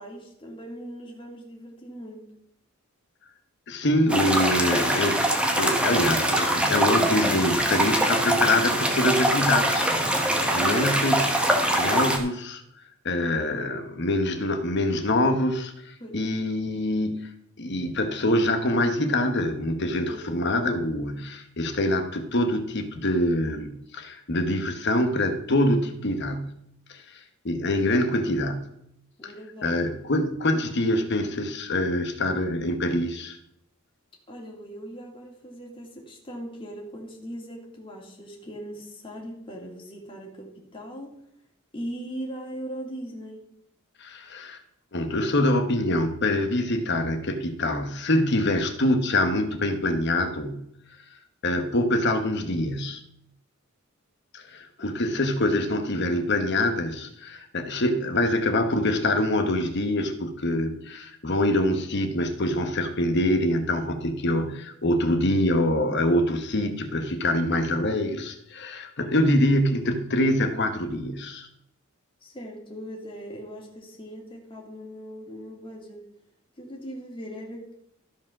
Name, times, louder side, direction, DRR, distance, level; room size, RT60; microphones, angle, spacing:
voice 1, 0.0-2.2 16.0-16.2 20.1-20.5 29.2-29.8 34.3-41.1 41.7-43.4 54.8-55.0 72.2-76.0 76.6-77.7, equal, 25° left, -1 dB, 2.4 m, -39 dB
voice 2, 3.7-9.9 10.5-11.4 11.8-12.6 13.0-17.2 17.6-26.5 26.9-27.0 27.4-28.7 29.2-29.3 29.6-33.4 44.0-44.6 44.9-50.6 51.4-53.0 54.3-71.5, left 1 dB, 55° left, 8 dB, 1.1 m, -25 dB
sound 1, 4.1-12.2, right 1 dB, 5° right, 1.2 m, -23 dB
13.5 x 5.1 x 6.0 m, 0.75 s
head